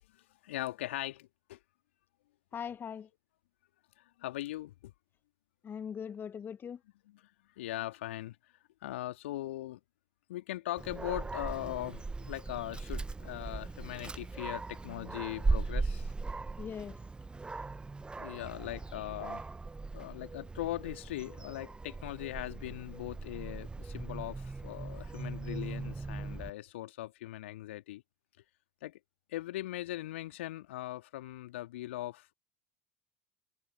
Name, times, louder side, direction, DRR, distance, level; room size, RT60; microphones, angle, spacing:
voice 1, 0.4-1.6 4.2-4.9 7.6-8.4 8.8-9.8 10.3-16.1 18.2-19.4 19.9-28.0 28.8-29.0 29.3-32.3, left 15 dB, 65° left, 2.2 m, -40 dB
voice 2, 2.5-3.1 5.6-6.8 16.6-17.0, left 7 dB, 30° left, 1.2 m, -40 dB
Dog, 10.8-26.5, right 3 dB, 15° right, 0.9 m, -38 dB
figure-of-eight pair, 70°, 7 cm